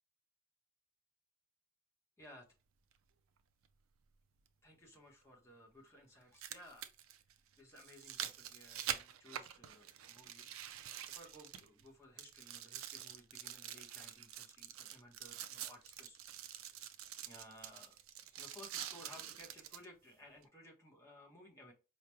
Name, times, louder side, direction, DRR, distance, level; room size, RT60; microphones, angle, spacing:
sound 1, 2.9-3.0 4.9-5.0 6.1-11.9 12.2-19.9 20.4-20.5, right 10 dB, 85° right, 0.4 m, -46 dB
voice 1, 4.6-6.9 7.6-16.6 17.3-18.0 18.3-21.7, left 1 dB, 15° left, -2 dB, 1.1 m, -58 dB
4.7 x 3.1 x 2.2 m, 0.31 s
head